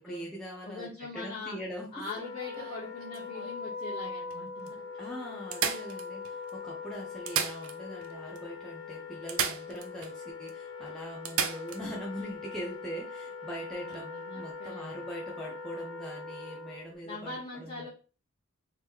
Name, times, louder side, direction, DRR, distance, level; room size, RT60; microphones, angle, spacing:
voice 1, 0.0-1.9 5.0-14.1 14.3-17.9, equal, 5° left, -4 dB, 0.6 m, -42 dB
voice 2, 0.6-1.6 1.9-4.8 13.8-15.0 17.0-17.9, left 3 dB, 30° left, -7 dB, 1.1 m, -42 dB
sound 1, 2.0-3.6 4.3-4.4 4.7-4.8 5.5-6.5 7.1-8.1 8.4-8.5 9.3-10.1 10.5-10.6 11.2-11.8 13.8-14.0, right 7 dB, 70° right, 0.5 m, -34 dB
Wind instrument woodwind instrument, 2.1-16.9, left 5 dB, 60° left, 1.3 m, -42 dB
3.2 x 2.9 x 3.6 m, 0.37 s
head